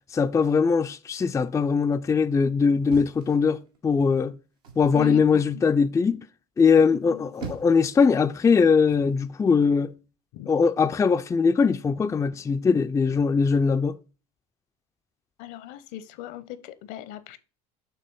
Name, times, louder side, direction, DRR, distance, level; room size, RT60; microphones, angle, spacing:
voice 1, 0.1-3.6 3.8-4.3 4.8-6.2 6.6-9.9 10.5-14.0, left 5 dB, 15° left, 0.4 m, -21 dB
sound 1, 2.9-3.9 4.6-5.0 7.0-7.9 8.9-9.2, right 4 dB, 85° right, 1.5 m, -41 dB
voice 2, 4.9-5.6 6.9-7.2 10.3-10.5 15.4-17.4, left 14 dB, 65° left, 0.8 m, -38 dB
6.7 x 3.0 x 5.3 m
hypercardioid pair, 80°, 19 cm